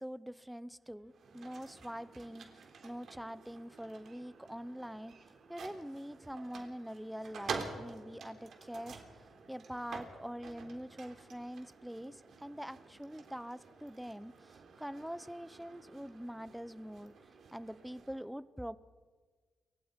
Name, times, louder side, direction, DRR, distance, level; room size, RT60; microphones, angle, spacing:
voice 1, 0.0-5.1 5.5-9.0 9.5-17.1 17.5-18.8, equal, ahead, 16 dB, 0.8 m, -44 dB
sound 1, 1.1-18.2, right 5 dB, 60° right, 3.4 m, -49 dB
28.5 x 24.5 x 5.3 m, 1.5 s
cardioid pair, 110°, 0 cm